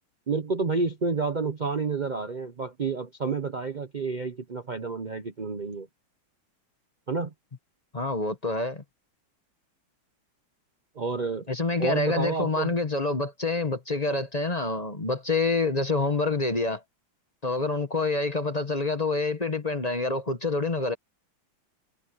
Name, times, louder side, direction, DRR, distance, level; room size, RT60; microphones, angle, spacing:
voice 1, 0.3-5.9 7.1-7.3 10.9-11.5 11.8-12.7, right 4 dB, 75° right, 0.4 m, -29 dB
voice 2, 7.9-8.8 11.5-16.8 17.4-20.9, left 3 dB, 25° left, 1.0 m, -27 dB
omnidirectional pair, 2.2 m